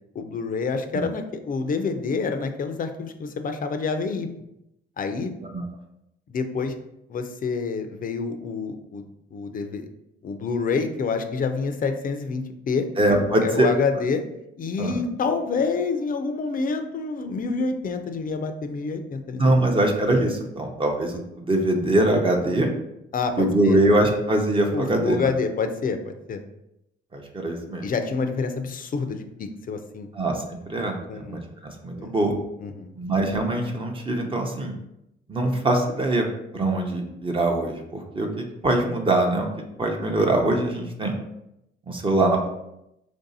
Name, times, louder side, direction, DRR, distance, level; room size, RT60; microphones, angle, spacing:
voice 1, 0.1-4.3 5.0-5.3 6.3-6.7 7.1-9.1 9.3-9.9 10.2-12.9 13.4-14.2 14.6-19.8 23.1-23.8 24.7-26.4 27.8-30.1 31.1-31.4 31.9-32.1 32.6-32.9, left 4 dB, 45° left, 7 dB, 0.5 m, -27 dB
voice 2, 13.0-13.7 14.8-15.0 19.4-22.7 23.4-25.3 27.1-27.9 30.1-30.4 30.7-32.3 33.0-34.7 35.3-36.3 36.5-38.3 38.6-39.5 39.8-41.2 41.9-42.5, right 1 dB, 25° right, 1 dB, 0.7 m, -22 dB
3.1 x 2.7 x 4.0 m, 0.84 s
cardioid pair, 90°, 20 cm